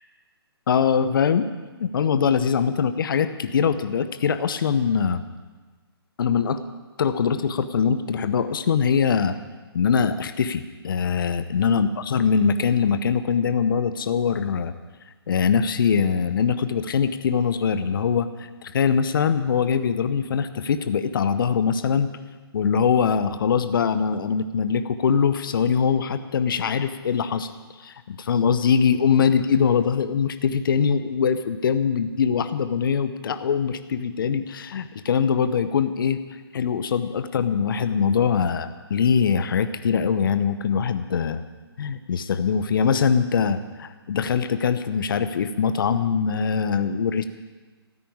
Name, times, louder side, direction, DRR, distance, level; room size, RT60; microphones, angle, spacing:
voice 1, 0.7-1.5 1.8-5.2 6.2-6.6 7.0-9.4 9.7-14.7 15.3-22.1 22.5-27.5 27.8-36.2 36.5-41.4 41.8-47.3, left 6 dB, 55° left, 11 dB, 0.9 m, -22 dB
13.5 x 10.0 x 8.8 m, 1.3 s
figure-of-eight pair, 140°, 13 cm